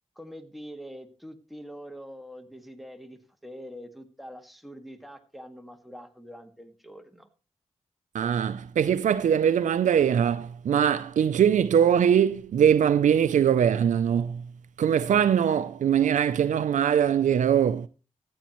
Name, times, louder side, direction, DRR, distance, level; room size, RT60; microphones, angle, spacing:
voice 1, 0.2-7.3, equal, ahead, 1.8 m, -44 dB
voice 2, 8.1-14.4 14.8-17.9, right 8 dB, 85° right, 0.4 m, -22 dB
14.5 x 9.4 x 3.0 m
cardioid pair, 60°, 12 cm